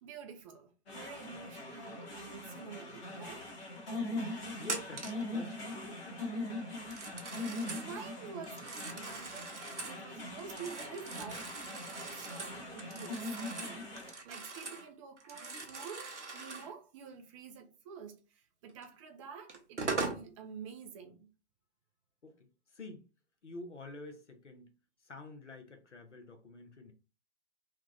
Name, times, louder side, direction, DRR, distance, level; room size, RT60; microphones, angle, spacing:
voice 1, 0.0-3.5 7.4-21.3, right 6 dB, 30° right, 0.5 m, -49 dB
sound 1, 0.9-14.1, left 2 dB, 60° left, 1.5 m, -42 dB
voice 2, 4.6-6.2 22.2-23.0 23.4-24.7 25.0-26.9, left 2 dB, 80° left, 0.9 m, -48 dB
Telephone, 4.6-5.3 6.8-7.9 8.4-10.0 10.4-14.9 15.2-16.7 18.8-18.9 19.5-20.2, right 3 dB, 80° right, 0.9 m, -41 dB
3.5 x 2.3 x 3.1 m
figure-of-eight pair, 110°, 35 cm